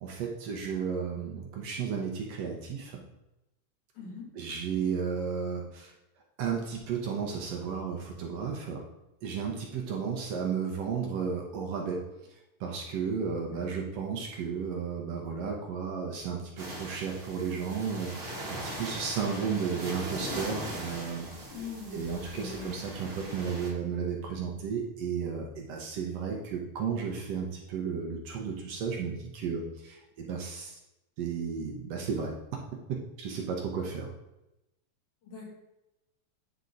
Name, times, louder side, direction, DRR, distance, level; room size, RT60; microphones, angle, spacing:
voice 1, 0.0-3.0 4.4-5.9 6.4-8.8 9.2-12.0 12.6-21.5 21.9-30.7 31.2-32.3 33.2-34.1, right 6 dB, 70° right, 0 dB, 1.8 m, -33 dB
voice 2, 4.0-4.3 13.5-13.7 21.5-22.0 22.3-22.7 35.2-35.5, left 4 dB, 80° left, -6 dB, 4.1 m, -41 dB
sound 1, 16.6-23.7, right 1 dB, 50° right, 0.7 m, -40 dB
9.4 x 3.6 x 3.9 m, 0.92 s
omnidirectional pair, 3.5 m